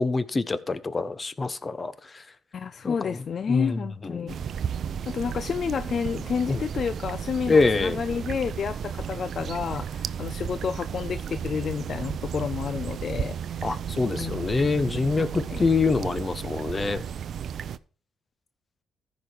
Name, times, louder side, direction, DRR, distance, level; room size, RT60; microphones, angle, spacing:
voice 1, 0.0-2.2 2.8-3.2 3.5-3.8 4.0-4.3 6.5-6.6 7.5-8.0 13.6-17.0, left 4 dB, 35° left, 1.1 m, -25 dB
voice 2, 2.5-4.4 5.0-13.8 14.1-14.7 15.2-15.6, left 6 dB, 55° left, 0.4 m, -30 dB
sound 1, 4.3-17.8, right 8 dB, 60° right, 0.5 m, -34 dB
14.5 x 5.3 x 4.6 m
supercardioid pair, 55°, 0 cm